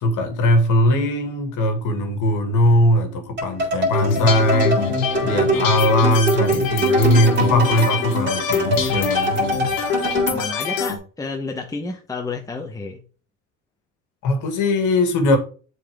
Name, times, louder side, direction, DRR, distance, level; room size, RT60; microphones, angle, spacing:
voice 1, 0.0-4.8 5.2-9.4 14.2-15.4, left 1 dB, 50° left, 2.0 m, -19 dB
sound 1, 3.4-10.5, right 2 dB, 30° right, 3.5 m, -24 dB
sound 2, 3.9-11.0, left 6 dB, 90° left, 1.6 m, -24 dB
voice 2, 9.3-9.8 10.3-13.0, left 3 dB, 10° left, 1.1 m, -31 dB
7.4 x 4.3 x 3.6 m
supercardioid pair, 95°, 38 cm